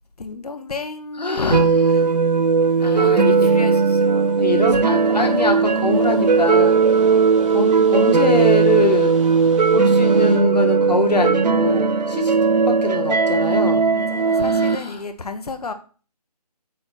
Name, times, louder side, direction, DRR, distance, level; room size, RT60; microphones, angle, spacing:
voice 1, 0.2-2.1 2.9-4.4 7.4-7.6 13.9-15.7, left 4 dB, 65° left, 1.1 m, -31 dB
voice 2, 1.2-1.6 2.8-3.6 4.4-7.0 7.5-9.2 9.7-12.3 12.7-13.9 14.3-15.0, left 2 dB, 80° left, 2.0 m, -23 dB
sound 1, 1.2-10.4, right 2 dB, 50° right, 2.2 m, -40 dB
sound 2, 1.5-14.8, right 5 dB, 80° right, 0.6 m, -17 dB
8.6 x 4.4 x 4.2 m
figure-of-eight pair, 165°, 21 cm